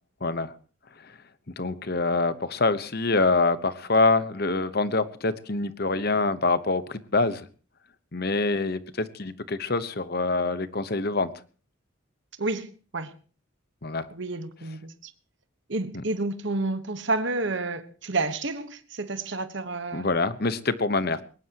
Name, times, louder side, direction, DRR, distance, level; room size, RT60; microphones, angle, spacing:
voice 1, 0.2-0.5 1.0-1.2 1.6-7.5 8.1-11.3 13.8-14.1 15.9-16.0 19.9-21.2, left 3 dB, 45° left, 1.0 m, -25 dB
voice 2, 12.4-13.1 14.1-15.1 15.7-20.1, right 3 dB, 60° right, 1.3 m, -30 dB
21.0 x 19.0 x 3.0 m
head